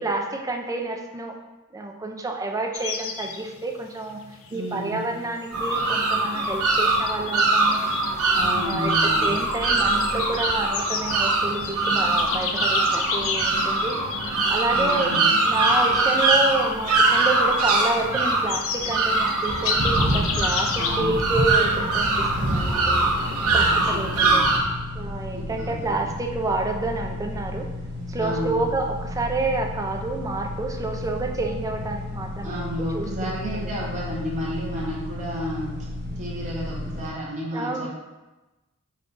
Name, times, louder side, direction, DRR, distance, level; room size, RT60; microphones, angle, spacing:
voice 1, 0.0-1.3 1.7-4.2 4.5-7.9 8.4-13.9 14.3-15.1 15.5-23.0 23.5-24.4 25.0-27.7 28.1-33.6 37.5-37.9, right 2 dB, 15° right, 2 dB, 0.4 m, -29 dB
sound 1, 2.7-21.0, left 6 dB, 60° left, 0.4 m, -33 dB
voice 2, 4.5-5.1 8.3-9.3 14.7-15.3 20.8-21.2 23.4-24.5 25.3-26.1 28.2-28.6 32.4-35.7 36.2-37.9, equal, 35° right, -5 dB, 0.8 m, -32 dB
sound 2, 5.5-24.6, right 2 dB, 70° right, 0.7 m, -22 dB
sound 3, 19.8-37.1, left 2 dB, 55° right, 1.2 m, -34 dB
5.2 x 2.2 x 3.9 m, 1.1 s
head